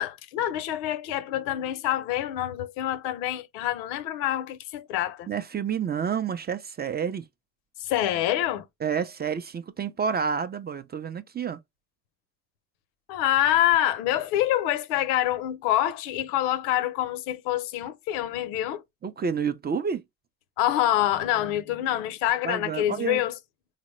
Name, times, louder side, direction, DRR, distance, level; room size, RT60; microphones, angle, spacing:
voice 1, 0.0-5.3 7.8-8.6 13.1-18.8 20.6-23.4, left 13 dB, 85° left, 0.6 m, -26 dB
voice 2, 5.3-7.2 8.8-11.6 19.0-20.0 22.4-23.2, right 6 dB, 25° right, 0.4 m, -29 dB
3.9 x 2.0 x 3.0 m
supercardioid pair, 70°, 41 cm